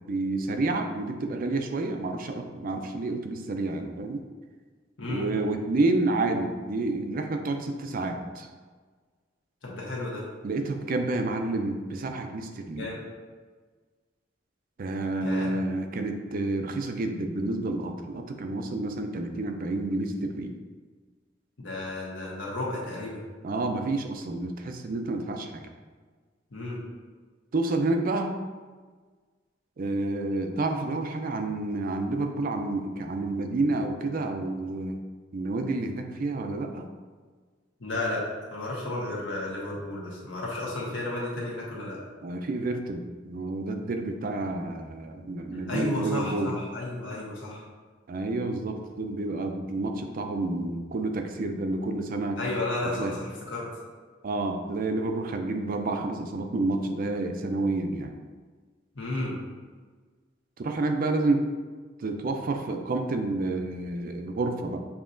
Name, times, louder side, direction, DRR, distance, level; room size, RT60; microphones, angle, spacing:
voice 1, 0.1-4.2 5.1-8.5 10.4-13.0 14.8-20.5 23.4-25.6 27.5-28.3 29.8-35.0 35.3-36.8 42.2-46.5 48.1-52.4 53.0-53.2 54.2-58.1 60.6-61.5 62.0-64.8, right 2 dB, 50° right, 5 dB, 0.4 m, -29 dB
voice 2, 9.6-10.2 12.8-13.0 15.2-15.5 21.6-23.2 26.5-26.8 37.8-42.0 45.7-47.6 52.4-53.7 58.9-59.3, left 2 dB, 80° left, -5 dB, 1.3 m, -32 dB
7.1 x 2.8 x 2.6 m, 1.5 s
head